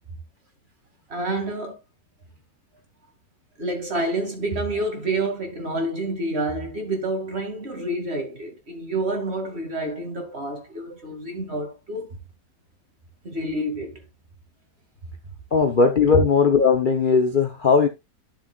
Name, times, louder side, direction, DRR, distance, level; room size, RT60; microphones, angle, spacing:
voice 1, 1.1-1.8 3.6-12.1 13.2-13.9, right 2 dB, 35° right, 2.4 m, -28 dB
voice 2, 15.5-17.9, left 5 dB, 35° left, 0.9 m, -18 dB
11.0 x 7.0 x 2.4 m
omnidirectional pair, 1.9 m